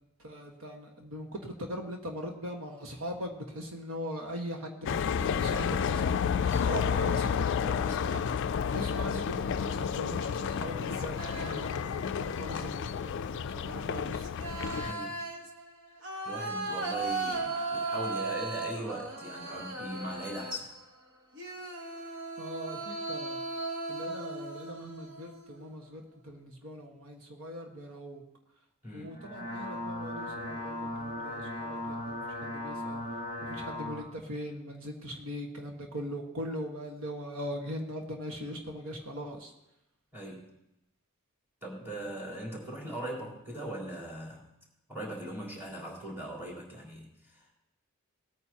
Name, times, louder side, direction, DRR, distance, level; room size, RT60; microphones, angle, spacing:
voice 1, 0.2-14.2 17.0-17.6 22.4-23.4 23.9-28.2 28.9-33.0 33.4-39.5, equal, 75° right, 2 dB, 1.5 m, -40 dB
sound 1, 4.9-14.9, left 7 dB, 60° left, 0.3 m, -31 dB
sound 2, 9.1-9.7 10.6-11.9 12.3-12.9 13.9-20.8 21.3-25.6, right 3 dB, 60° right, 1.3 m, -37 dB
voice 2, 14.8-15.2 16.2-20.7 28.8-29.1 40.1-40.5 41.6-44.4 44.9-47.5, right 1 dB, 10° right, -4 dB, 3.6 m, -40 dB
sound 3, 29.1-34.0, left 1 dB, 40° right, 3.2 m, -37 dB
19.5 x 9.2 x 2.9 m, 0.87 s
head